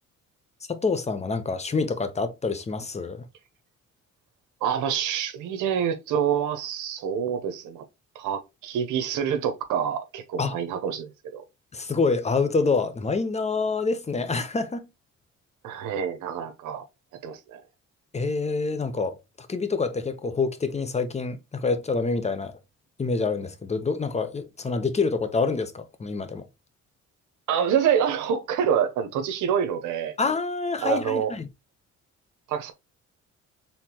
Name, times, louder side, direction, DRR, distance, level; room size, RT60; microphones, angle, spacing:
voice 1, 0.7-3.3 10.4-10.5 11.7-14.9 18.1-22.5 23.0-26.5 30.2-31.5, left 4 dB, 20° left, 0.7 m, -27 dB
voice 2, 4.6-7.8 8.1-11.4 15.6-16.8 17.2-17.6 27.5-30.1 30.8-31.3 32.5-32.7, right 8 dB, 85° right, 0.8 m, -27 dB
4.3 x 3.6 x 2.8 m
cardioid pair, 90°, 30 cm